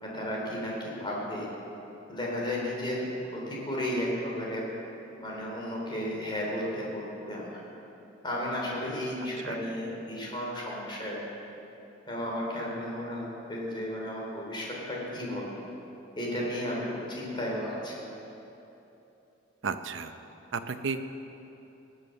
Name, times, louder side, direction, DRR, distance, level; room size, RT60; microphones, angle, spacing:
voice 1, 0.0-1.5 2.1-4.6 5.2-7.6 8.2-11.2 12.1-15.6 16.2-17.9, left 1 dB, 25° left, -3 dB, 3.4 m, -33 dB
voice 2, 19.6-20.1 20.5-21.0, right 5 dB, 85° right, 10 dB, 0.7 m, -32 dB
19.5 x 7.4 x 6.5 m, 3.0 s
head